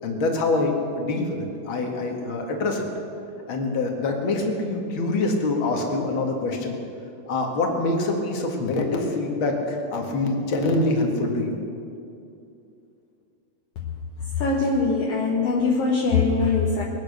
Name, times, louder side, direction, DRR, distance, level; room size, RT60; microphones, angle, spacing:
voice 1, 0.0-2.8 3.5-6.8 7.3-11.6, left 2 dB, 45° left, 1 dB, 1.9 m, -25 dB
voice 2, 14.2-16.8, left 4 dB, 65° left, -2 dB, 1.6 m, -22 dB
22.0 x 9.3 x 6.6 m, 2.6 s
omnidirectional pair, 4.4 m